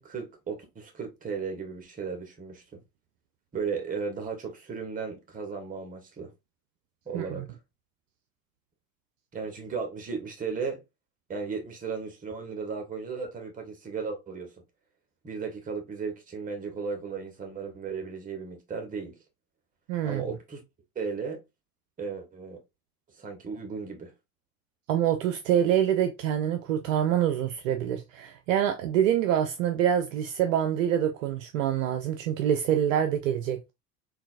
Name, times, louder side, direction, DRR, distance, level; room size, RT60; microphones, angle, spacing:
voice 1, 0.0-2.8 3.5-6.3 7.1-7.5 9.3-10.8 11.3-14.5 15.2-19.2 20.0-20.6 20.9-21.4 22.0-22.6 23.2-24.1, right 5 dB, 15° right, 1.0 m, -35 dB
voice 2, 7.1-7.4 19.9-20.2 24.9-33.7, right 10 dB, 55° right, 0.5 m, -26 dB
3.8 x 2.3 x 2.4 m
figure-of-eight pair, 75°, 47 cm